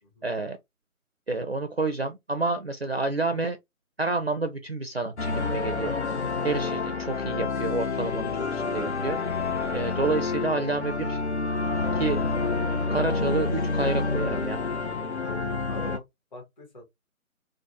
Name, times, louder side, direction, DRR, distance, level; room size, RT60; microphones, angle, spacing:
voice 1, 0.2-0.6 1.3-3.6 4.0-6.0 6.4-9.2 9.7-11.2 12.0-12.2 12.9-14.6, right 3 dB, 45° right, 0.4 m, -29 dB
sound 1, 5.2-16.0, left 4 dB, 50° left, 0.5 m, -28 dB
voice 2, 15.2-16.0 16.3-16.8, left 1 dB, 30° left, 1.6 m, -43 dB
3.3 x 2.1 x 2.7 m
figure-of-eight pair, 155°, 43 cm